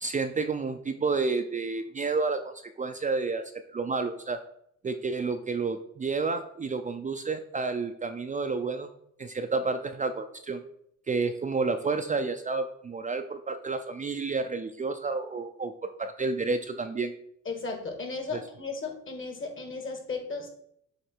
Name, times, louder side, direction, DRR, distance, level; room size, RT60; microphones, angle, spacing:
voice 1, 0.0-4.4 4.8-8.9 9.2-10.6 11.1-17.1 18.3-18.4, right 4 dB, 25° right, 7 dB, 0.4 m, -30 dB
voice 2, 17.5-20.5, left 4 dB, 40° left, 4 dB, 1.8 m, -35 dB
7.9 x 3.2 x 4.5 m, 0.70 s
cardioid pair, 90°, 30 cm